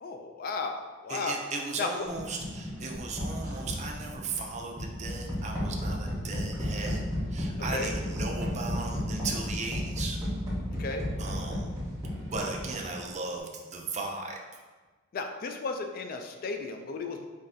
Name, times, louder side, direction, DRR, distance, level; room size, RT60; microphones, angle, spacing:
voice 1, 0.0-0.8 1.0-1.4 1.8-2.1 7.7-7.9 10.8-11.0 15.1-17.3, left 4 dB, 45° left, 5 dB, 0.3 m, -34 dB
voice 2, 1.1-7.0 7.3-10.2 11.2-11.7 12.2-14.4, right 3 dB, 35° right, 2 dB, 0.4 m, -36 dB
sound 1, 2.1-13.0, equal, 15° right, 1.1 m, -34 dB
5.2 x 2.7 x 2.6 m, 1.3 s
head